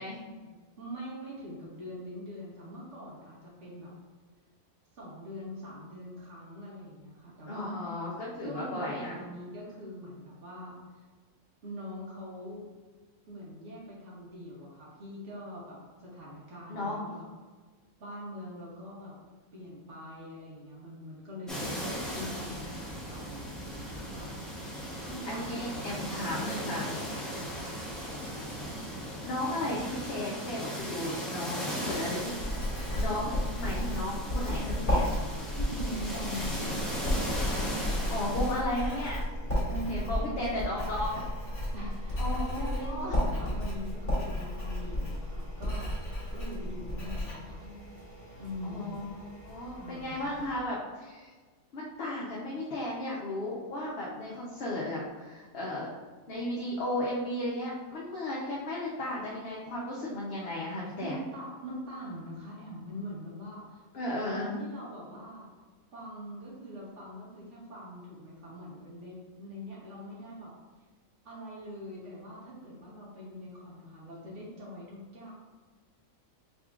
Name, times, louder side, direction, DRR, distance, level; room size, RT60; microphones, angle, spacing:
voice 1, 0.3-3.9 4.9-7.8 8.4-10.8 11.6-12.7 13.3-17.3 18.0-19.2 19.5-24.5 25.0-26.7 27.4-27.7 35.5-36.9 39.6-40.9 41.7-45.9 46.3-47.6 48.4-49.0 49.7-50.4 61.0-63.9 64.3-65.5 65.9-70.5 71.2-75.3, equal, 60° right, -5 dB, 1.5 m, -43 dB
voice 2, 7.5-9.2 16.7-17.0 25.3-26.9 29.2-32.4 32.9-35.1 38.1-39.2 39.9-41.3 42.2-43.1 47.4-47.8 48.6-51.3 51.7-55.9 56.3-61.2 63.9-64.7, left 1 dB, 55° left, -5 dB, 0.9 m, -35 dB
sound 1, 21.5-38.5, equal, ahead, 0.6 m, -37 dB
Writing, 32.3-47.3, left 1 dB, 35° left, 1.8 m, -32 dB
sound 2, 37.5-50.5, right 1 dB, 25° right, 1.1 m, -49 dB
5.2 x 3.4 x 2.4 m, 1.4 s
omnidirectional pair, 1.4 m